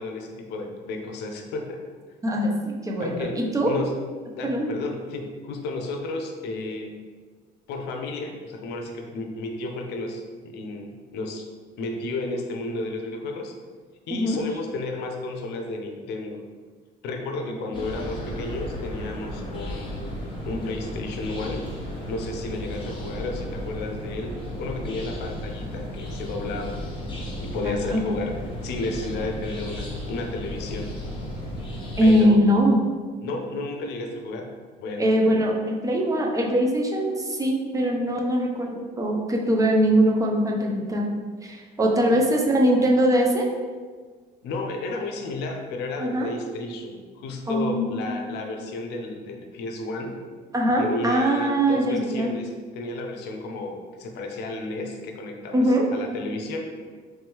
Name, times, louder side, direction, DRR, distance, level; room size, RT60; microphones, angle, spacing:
voice 1, 0.0-1.8 3.0-3.4 3.7-3.9 4.4-7.0 7.7-11.5 11.8-13.5 14.1-16.4 17.0-20.2 20.5-30.9 32.0-32.4 33.2-34.5 34.8-35.1 44.4-50.2 50.8-56.8, left 2 dB, 80° left, 3 dB, 0.6 m, -32 dB
voice 2, 2.8-3.7 4.4-4.7 14.1-14.5 27.6-28.0 32.0-32.8 35.0-41.1 41.4-43.5 46.0-46.3 47.5-48.2 50.5-52.3 55.5-55.9, equal, 20° right, -1 dB, 0.6 m, -22 dB
sound 1, 17.7-32.2, left 1 dB, 30° left, 1.1 m, -34 dB
3.2 x 3.0 x 3.5 m, 1.5 s
cardioid pair, 110°, 17 cm